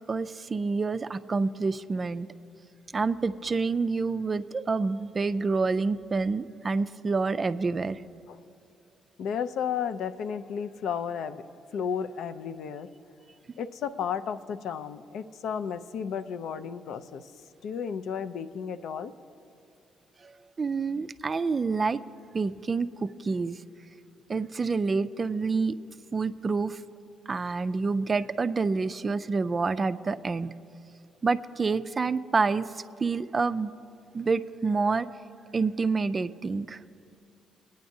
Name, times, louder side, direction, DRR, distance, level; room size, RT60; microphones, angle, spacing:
voice 1, 0.1-2.3 2.9-8.0 20.2-20.3 20.6-22.0 22.3-23.6 24.3-25.7 26.1-26.8 27.3-30.5 31.2-33.7 34.1-35.1 35.5-36.8, right 4 dB, 35° right, 12 dB, 0.3 m, -28 dB
voice 2, 9.2-11.4 11.7-12.9 13.6-17.3 17.6-19.1, left 7 dB, 75° left, 10 dB, 0.4 m, -33 dB
19.5 x 9.3 x 2.7 m, 2.6 s
cardioid pair, 90°, 0 cm